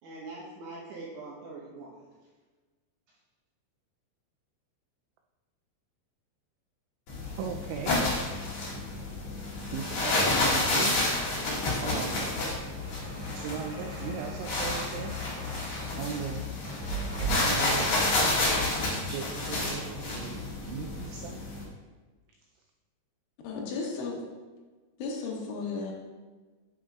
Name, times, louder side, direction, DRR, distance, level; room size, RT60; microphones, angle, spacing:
voice 1, 0.0-2.1, right 3 dB, 70° right, -5 dB, 2.5 m, -43 dB
sound 1, 7.1-21.6, left 2 dB, 60° left, 1.7 m, -30 dB
voice 2, 7.4-8.0 9.7-11.1 11.6-12.3 13.3-15.2 16.0-16.4 17.4-18.1 19.0-21.4, right 7 dB, 90° right, 2 dB, 2.6 m, -38 dB
sound 2, 12.6-17.6, right 6 dB, 50° right, 1.9 m, -40 dB
voice 3, 23.4-24.2 25.0-25.9, left 4 dB, 80° left, -1 dB, 3.5 m, -34 dB
9.1 x 7.4 x 2.4 m, 1.3 s
omnidirectional pair, 5.8 m